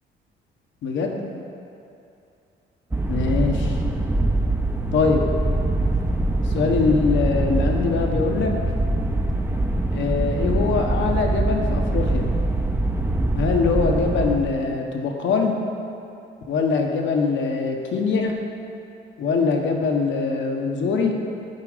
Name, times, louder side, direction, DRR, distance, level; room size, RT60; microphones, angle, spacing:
voice 1, 0.8-1.2 3.1-3.8 4.9-5.2 6.4-8.5 9.9-12.3 13.3-15.5 16.5-18.3 19.2-21.1, left 4 dB, 70° left, 2 dB, 1.2 m, -23 dB
sound 1, 2.9-14.4, right 2 dB, 10° right, 0.7 m, -23 dB
12.5 x 5.0 x 5.0 m, 2.7 s
cardioid pair, 90°, 20 cm